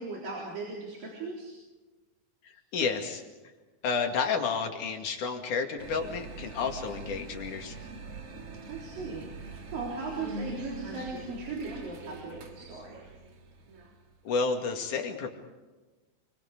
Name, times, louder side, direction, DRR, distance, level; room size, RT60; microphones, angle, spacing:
voice 1, 0.0-1.5 8.7-13.0, right 3 dB, 85° right, -3 dB, 5.5 m, -38 dB
voice 2, 2.4-3.2 3.8-7.8 14.3-15.3, left 5 dB, 65° left, 3 dB, 3.7 m, -31 dB
sound 1, 5.8-14.4, right 3 dB, 50° right, 2.8 m, -43 dB
28.5 x 24.5 x 5.0 m, 1.2 s
omnidirectional pair, 3.9 m